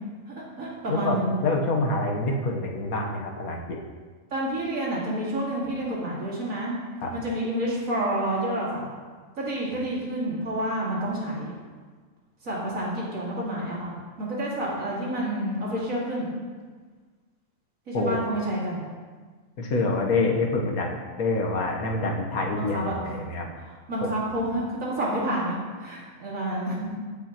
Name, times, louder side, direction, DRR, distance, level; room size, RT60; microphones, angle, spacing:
voice 1, 0.3-1.4 4.3-6.7 7.1-8.8 9.4-11.5 12.4-13.9 14.2-16.3 17.9-18.8 22.6-23.1 23.6-24.6 25.0-25.5 25.8-26.9, right 1 dB, 70° right, -5 dB, 2.5 m, -29 dB
voice 2, 0.9-3.8 7.0-7.1 17.9-18.2 19.6-20.9 21.2-23.5 24.0-24.1, left 2 dB, 90° left, 1 dB, 1.6 m, -26 dB
14.5 x 6.1 x 3.0 m, 1.5 s
omnidirectional pair, 1.5 m